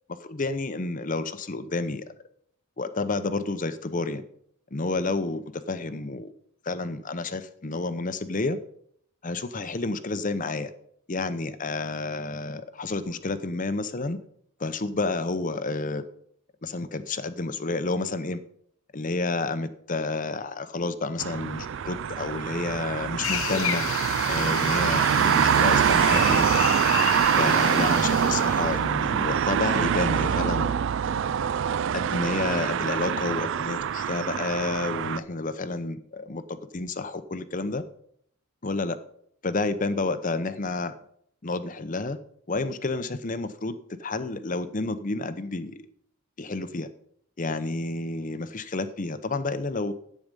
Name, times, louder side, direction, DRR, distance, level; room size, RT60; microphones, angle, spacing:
voice 1, 0.2-2.1 2.8-4.2 4.7-6.3 6.6-8.6 9.2-10.7 11.1-14.2 14.6-16.0 16.6-18.4 18.9-23.9 24.3-26.7 27.4-30.7 31.9-37.8 38.6-39.0 39.4-40.9 41.4-42.2 42.5-45.9 46.4-46.9 47.4-49.9, left 3 dB, 35° left, 12 dB, 0.7 m, -30 dB
sound 1, 21.2-35.2, right 8 dB, 55° right, 0.3 m, -24 dB
sound 2, 23.2-28.7, left 8 dB, 65° left, 0.9 m, -31 dB
10.5 x 8.6 x 5.3 m, 0.67 s
head